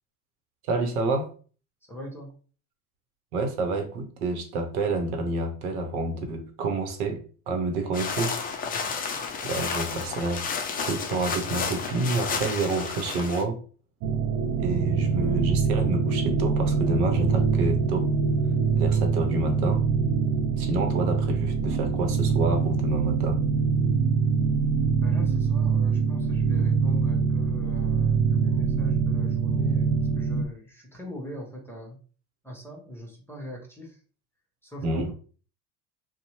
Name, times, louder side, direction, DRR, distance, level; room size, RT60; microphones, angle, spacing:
voice 1, 0.7-1.3 3.3-7.2 7.5-8.4 9.4-10.4 10.9-13.6 14.6-18.1 18.8-19.8 20.6-23.4 34.8-35.1, right 2 dB, 75° right, 4 dB, 0.9 m, -28 dB
voice 2, 1.8-2.3 25.0-32.0 32.4-34.0 34.6-35.1, equal, 5° left, -1 dB, 0.9 m, -41 dB
sound 1, 7.9-13.4, left 5 dB, 20° left, 0.3 m, -31 dB
sound 2, 14.0-30.4, right 5 dB, 60° right, 0.5 m, -24 dB
2.6 x 2.2 x 3.0 m, 0.39 s
hypercardioid pair, 75°, 44 cm